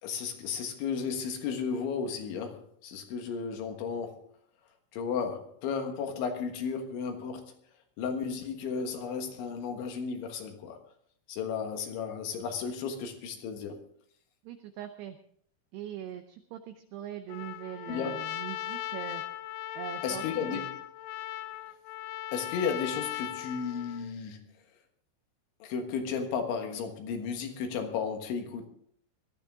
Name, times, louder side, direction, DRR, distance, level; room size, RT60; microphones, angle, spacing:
voice 1, 0.0-4.3 4.9-7.5 8.0-10.8 11.3-13.8 17.9-18.2 20.0-20.7 22.3-24.4 25.6-28.7, left 6 dB, 70° left, 4 dB, 3.7 m, -34 dB
voice 2, 14.4-15.2 15.7-19.2 19.8-20.6, right 10 dB, 85° right, 7 dB, 2.4 m, -41 dB
Trumpet, 17.3-24.1, left 13 dB, 90° left, 3.4 m, -38 dB
19.0 x 13.0 x 3.6 m, 0.63 s
omnidirectional pair, 5.8 m